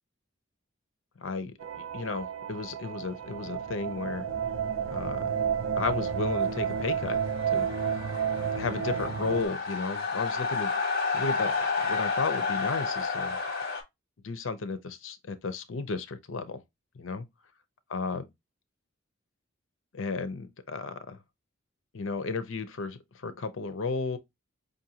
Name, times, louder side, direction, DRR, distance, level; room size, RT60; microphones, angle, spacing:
voice 1, 1.2-4.2 4.9-5.3 5.8-7.2 7.5-7.7 8.5-10.7 11.1-13.4 14.2-16.6 17.0-17.2 17.9-18.3 19.9-21.2 21.9-24.2, left 4 dB, 70° left, 0.6 m, -34 dB
sound 1, 1.6-9.5, right 7 dB, 80° right, 0.5 m, -31 dB
sound 2, 6.1-13.8, left 4 dB, 50° left, 1.3 m, -31 dB
5.3 x 2.6 x 2.8 m
head